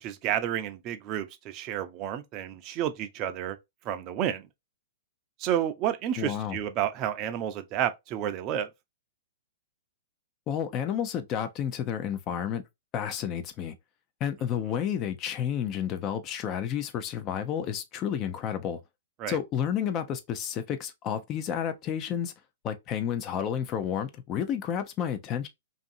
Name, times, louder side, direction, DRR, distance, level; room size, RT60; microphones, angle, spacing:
voice 1, 0.0-3.6 3.8-4.5 5.4-8.7 19.2-19.4, right 10 dB, 35° right, 0.5 m, -30 dB
voice 2, 6.2-6.6 10.5-12.6 12.9-13.7 14.2-18.8 19.3-22.3 22.6-25.5, left 9 dB, 30° left, 0.5 m, -31 dB
2.6 x 2.5 x 2.6 m
hypercardioid pair, 130°, 0 cm